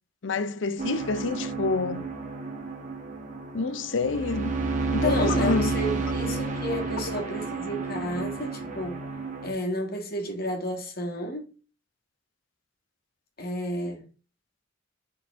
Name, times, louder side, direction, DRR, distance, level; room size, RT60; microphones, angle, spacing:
voice 1, 0.2-2.1 3.5-4.6 4.9-5.7, left 3 dB, 70° left, 0.6 m, -27 dB
sound 1, 0.8-9.5, right 3 dB, 40° right, 1.3 m, -31 dB
voice 2, 5.0-9.0 9.4-11.5 13.4-14.0, equal, 50° left, 1.5 m, -31 dB
5.1 x 3.9 x 5.4 m
head